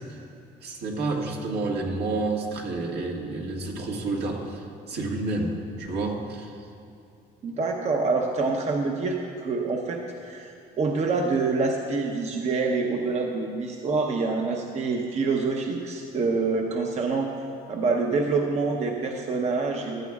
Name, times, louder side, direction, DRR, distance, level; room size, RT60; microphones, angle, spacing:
voice 1, 0.6-6.5, right 2 dB, 80° right, -1 dB, 1.8 m, -30 dB
voice 2, 7.4-17.3 17.7-20.1, right 4 dB, 40° right, 1 dB, 0.9 m, -26 dB
15.5 x 12.5 x 2.4 m, 2.5 s
cardioid pair, 110°, 17 cm